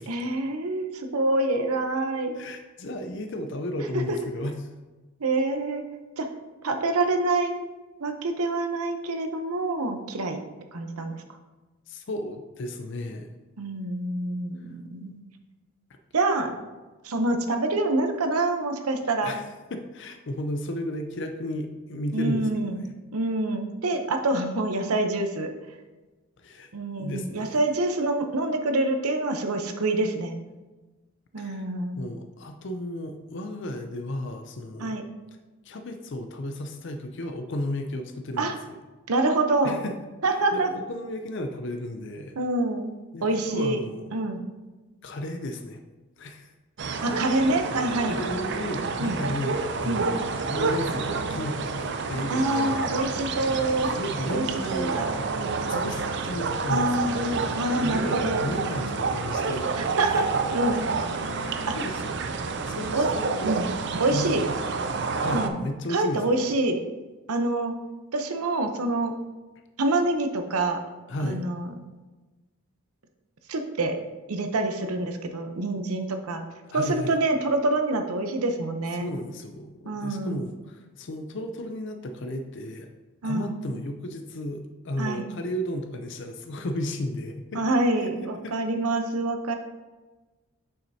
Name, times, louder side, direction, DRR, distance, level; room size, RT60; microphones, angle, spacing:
voice 1, 0.1-2.3 5.2-5.8 6.2-6.3 6.6-7.5 8.0-10.4 10.7-11.2 13.6-15.2 16.1-16.6 17.0-19.3 22.1-22.8 23.1-25.5 26.7-30.3 31.3-32.0 34.8-35.0 38.4-38.5 39.1-39.8 40.2-40.7 42.4-42.9 43.2-43.8 44.1-44.4 47.0-48.1 49.0-49.2 49.9-50.1 52.3-53.9 54.3-54.4 54.7-55.1 56.7-58.4 59.8-60.8 61.7-61.8 62.9-63.0 63.4-63.7 64.0-64.4 65.3-65.6 65.9-66.8 67.3-67.8 68.1-69.1 69.8-70.8 71.2-71.7 73.5-74.0 74.3-76.4 76.7-79.1 79.9-80.4 83.2-83.6 85.0-85.3 87.5-89.5, right 2 dB, 85° right, 6 dB, 0.7 m, -26 dB
voice 2, 2.3-4.7 11.9-13.3 19.2-22.9 26.4-26.7 27.0-27.6 31.4-31.6 32.0-35.0 35.6-38.8 39.6-40.0 40.3-42.3 43.1-44.1 45.0-45.8 46.2-46.5 46.8-47.2 48.1-52.8 53.9-55.0 55.7-57.1 57.7-59.7 61.2-62.0 62.7-63.6 64.1-64.5 65.1-66.4 71.1-71.4 76.6-77.2 79.0-82.9 83.2-88.6, left 1 dB, 55° left, 6 dB, 0.5 m, -34 dB
sound 1, 46.8-65.5, right 4 dB, 50° right, 0.5 m, -29 dB
7.2 x 5.7 x 2.7 m, 1.2 s
head